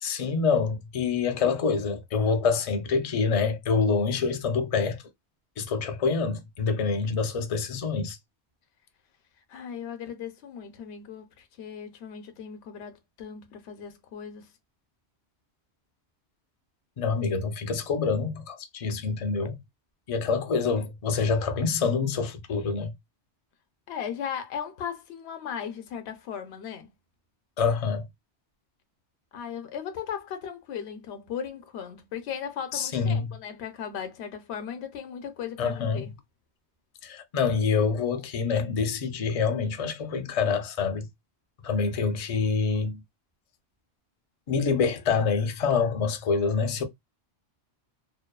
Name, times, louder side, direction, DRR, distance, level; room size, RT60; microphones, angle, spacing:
voice 1, 0.0-5.0 5.6-8.2 17.0-19.6 20.1-22.9 27.6-28.0 32.7-33.3 35.6-36.0 37.0-41.1 41.6-43.0 44.5-46.8, left 5 dB, 50° left, 0.4 m, -26 dB
voice 2, 9.5-14.5 23.9-26.9 29.3-36.1, left 8 dB, 70° left, 0.8 m, -37 dB
2.6 x 2.2 x 2.2 m
omnidirectional pair, 1.1 m